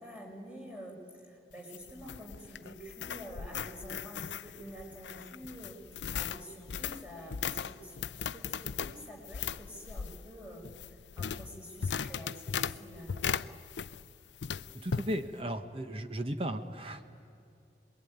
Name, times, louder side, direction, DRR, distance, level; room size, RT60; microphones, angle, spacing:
voice 1, 0.0-10.6 11.2-13.3, equal, 10° right, -1 dB, 5.1 m, -48 dB
sound 1, 1.5-14.1 14.4-15.1, left 7 dB, 90° left, 0.5 m, -38 dB
voice 2, 14.7-17.1, right 1 dB, 30° right, 8 dB, 1.1 m, -36 dB
27.0 x 21.5 x 9.5 m, 2.4 s
head